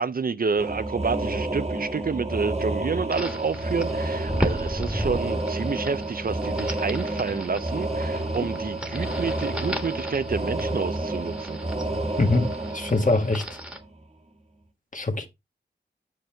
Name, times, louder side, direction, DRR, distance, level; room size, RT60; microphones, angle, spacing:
voice 1, 0.0-11.6, right 5 dB, 50° right, 0.5 m, -29 dB
sound 1, 0.6-14.0, right 2 dB, 35° right, 1.2 m, -30 dB
sound 2, 3.1-13.8, equal, 5° right, 1.4 m, -36 dB
voice 2, 12.2-13.4 14.9-15.3, left 2 dB, 45° left, 1.5 m, -23 dB
8.0 x 6.0 x 3.4 m
wide cardioid pair, 75°, 19 cm